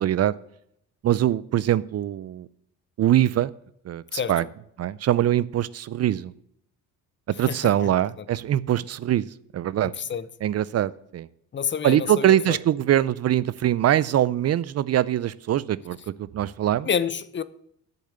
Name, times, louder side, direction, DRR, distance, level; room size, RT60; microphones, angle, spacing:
voice 1, 0.0-0.3 1.0-2.5 3.0-3.5 3.9-4.4 4.8-6.3 7.4-9.3 9.5-9.9 10.4-11.3 11.8-16.9, right 12 dB, 50° right, 0.5 m, -23 dB
voice 2, 4.1-4.5 7.5-7.9 9.8-10.3 11.5-12.6 16.8-17.4, left 7 dB, 35° left, 0.7 m, -28 dB
8.5 x 6.6 x 7.8 m
supercardioid pair, 80°, 34 cm